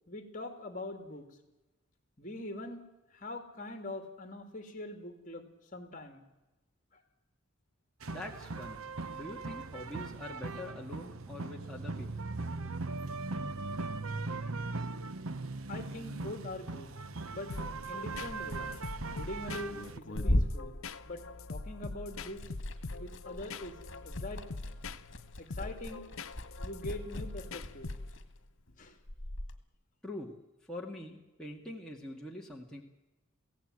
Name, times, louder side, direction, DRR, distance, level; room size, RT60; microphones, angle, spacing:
voice 1, 0.1-1.4 2.2-6.2 6.9-7.0 15.7-16.9 17.3-17.5 17.9-18.6 19.1-20.8 21.0-21.2 21.5-22.4 23.0-24.4 25.4-26.0 26.6-27.9 28.8-29.0, left 1 dB, 35° left, 6 dB, 2.7 m, -43 dB
sound 1, 8.0-20.0, right 3 dB, 80° right, 0.9 m, -39 dB
voice 2, 8.1-12.3 30.0-30.4 30.6-32.8, left 1 dB, 5° left, -3 dB, 2.0 m, -44 dB
sound 2, 17.5-28.4, left 3 dB, 85° left, 0.9 m, -43 dB
Liquid, 18.0-21.7 22.0-29.5, left 1 dB, 60° left, 1.9 m, -38 dB
22.5 x 16.5 x 9.1 m, 1.1 s
head